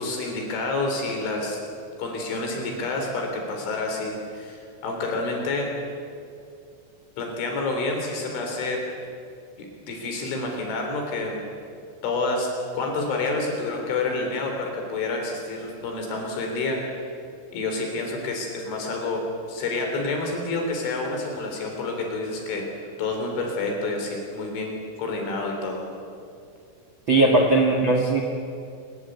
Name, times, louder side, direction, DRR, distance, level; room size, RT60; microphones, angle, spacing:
voice 1, 0.0-1.6 2.0-5.7 7.2-8.8 9.6-11.4 12.0-12.5 12.7-17.0 17.5-19.2 19.5-22.6 23.0-24.7 25.0-25.8, left 3 dB, 65° left, 2 dB, 6.2 m, -28 dB
voice 2, 27.1-28.2, right 2 dB, 50° right, 1 dB, 1.4 m, -19 dB
25.5 x 20.5 x 8.3 m, 2.3 s
omnidirectional pair, 5.9 m